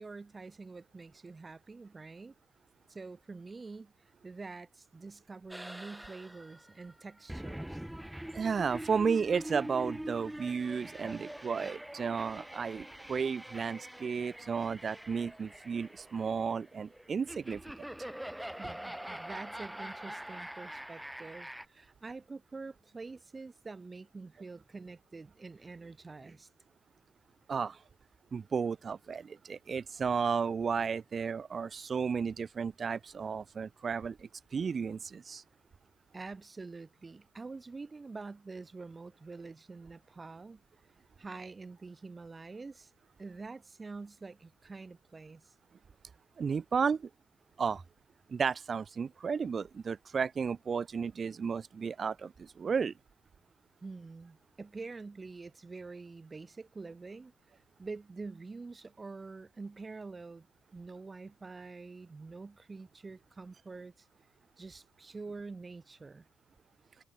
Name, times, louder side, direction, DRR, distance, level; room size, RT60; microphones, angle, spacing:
voice 1, 0.0-2.3 2.9-7.8 18.6-26.5 36.1-40.6 41.2-42.9 43.2-45.5 53.8-57.3 57.8-60.5 60.7-64.1 64.6-66.3, right 3 dB, 25° right, 3.0 m, -46 dB
sound 1, 5.5-21.7, right 1 dB, 5° right, 7.5 m, -44 dB
voice 2, 8.3-17.6 27.5-27.8 28.3-35.4 46.4-47.1 47.6-47.8 48.3-52.9, right 6 dB, 40° right, 1.2 m, -33 dB
cardioid pair, 90°, 0 cm